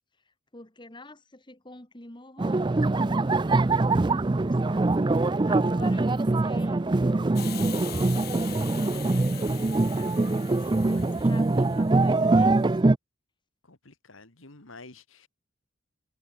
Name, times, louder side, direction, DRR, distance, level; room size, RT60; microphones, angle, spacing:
voice 1, 0.2-12.8, left 1 dB, 20° left, 2.0 m, -49 dB
sound 1, 2.4-13.0, right 2 dB, 20° right, 0.4 m, -23 dB
Hiss, 7.4-12.7, left 14 dB, 50° left, 1.9 m, -43 dB
voice 2, 13.7-15.3, left 3 dB, 75° left, 2.6 m, -49 dB
head